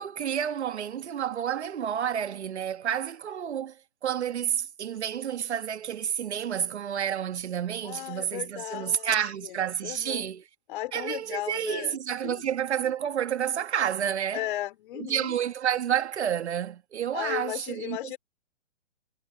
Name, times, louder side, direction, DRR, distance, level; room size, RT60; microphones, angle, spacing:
voice 1, 0.0-3.8 4.0-10.4 10.9-14.4 14.9-18.0, right 9 dB, 65° right, 1.6 m, -30 dB
voice 2, 7.8-9.1 9.4-9.6 9.8-10.3 10.7-12.0 12.2-12.4 14.3-15.4 17.1-18.2, left 15 dB, 45° left, 2.6 m, -35 dB
figure-of-eight pair, 130°, 37 cm